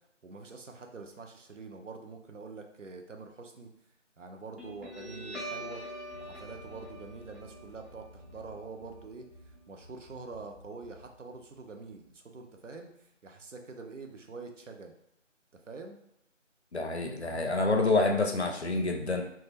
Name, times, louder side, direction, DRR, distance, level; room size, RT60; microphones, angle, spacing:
voice 1, 0.2-3.7 4.2-5.8 6.2-9.3 9.7-12.9 13.2-14.9 15.7-16.0, right 4 dB, 70° right, 4 dB, 0.5 m, -45 dB
Guitar, 4.6-11.6, equal, ahead, 0.5 m, -45 dB
voice 2, 16.7-19.2, left 3 dB, 60° left, 3 dB, 0.4 m, -27 dB
2.2 x 2.0 x 3.2 m, 0.78 s
figure-of-eight pair, 180°, 38 cm